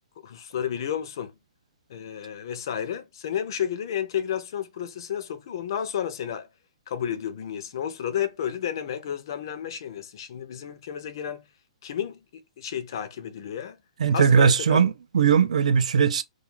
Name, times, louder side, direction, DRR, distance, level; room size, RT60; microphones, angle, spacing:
voice 1, 0.2-1.3 1.9-6.5 6.9-11.4 11.8-13.8 14.1-14.8, left 9 dB, 40° left, 0.4 m, -32 dB
voice 2, 14.0-16.2, right 6 dB, 75° right, 0.4 m, -19 dB
2.3 x 2.3 x 3.0 m
hypercardioid pair, 175°, 4 cm